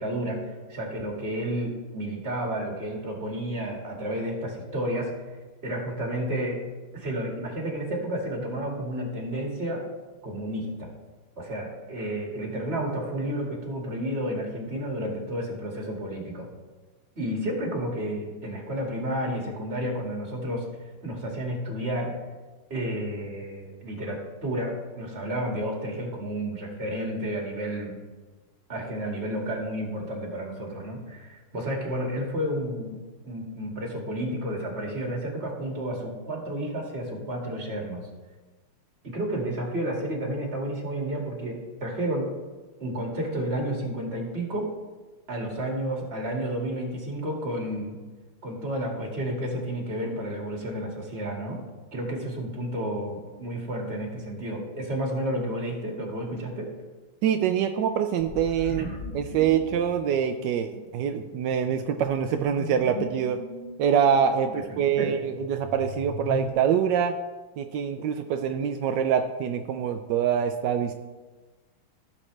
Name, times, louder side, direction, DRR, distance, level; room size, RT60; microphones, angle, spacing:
voice 1, 0.0-5.2 5.6-6.7 6.9-9.9 10.2-10.9 11.4-16.5 17.2-20.6 21.0-22.2 22.7-28.0 28.7-33.0 33.3-38.1 39.0-42.3 42.8-44.7 45.3-48.0 48.4-51.6 51.9-56.7 58.8-58.9 64.5-65.1, right 1 dB, 30° right, -1 dB, 2.1 m, -31 dB
voice 2, 57.2-58.9 59.1-63.4 63.8-67.2 67.6-70.9, right 8 dB, 80° right, 7 dB, 1.0 m, -25 dB
sound 1, 58.2-66.5, left 3 dB, 50° left, 0.5 m, -39 dB
15.5 x 7.5 x 3.3 m, 1.3 s
omnidirectional pair, 2.4 m